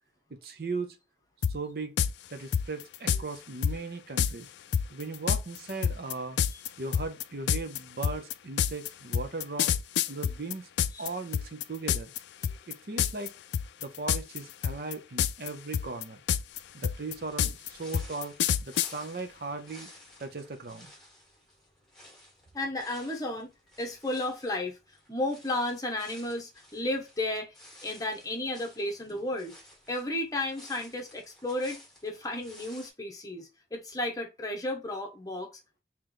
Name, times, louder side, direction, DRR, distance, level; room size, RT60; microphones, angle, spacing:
voice 1, 0.3-1.0 1.5-2.0 2.3-4.5 4.9-6.4 6.8-9.7 10.1-10.7 11.0-12.1 12.7-13.3 13.8-16.2 16.7-18.3 18.6-19.9 20.2-20.9, right 3 dB, 55° right, 0.6 m, -38 dB
sound 1, 1.4-1.5 2.0-2.1 2.5-3.2 3.6-3.8 4.2-4.3 4.7-11.1 11.3-12.2 12.4-12.7 13.0-13.3 13.5-14.4 14.6-15.5 15.7-18.9, left 8 dB, 80° left, 0.3 m, -27 dB
sound 2, 16.5-32.9, left 1 dB, ahead, 1.7 m, -54 dB
voice 2, 22.5-23.5 23.8-27.5 27.8-29.5 29.9-35.8, left 1 dB, 20° left, 0.9 m, -33 dB
3.2 x 2.9 x 3.8 m
head